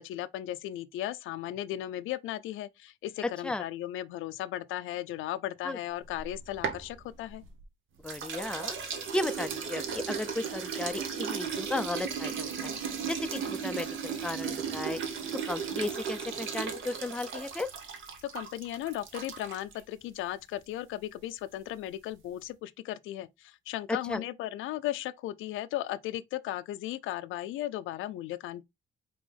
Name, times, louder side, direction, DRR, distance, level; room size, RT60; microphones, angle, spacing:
voice 1, 0.0-7.4 18.3-28.6, left 13 dB, 85° left, 0.4 m, -36 dB
sound 1, 6.0-7.6 8.1-19.8, right 6 dB, 75° right, 1.1 m, -36 dB
voice 2, 8.0-8.8 9.1-12.7 13.1-15.0 15.5-17.7 24.1-24.2, left 2 dB, 5° left, 0.4 m, -35 dB
5.3 x 3.0 x 3.3 m
cardioid pair, 90°, 20 cm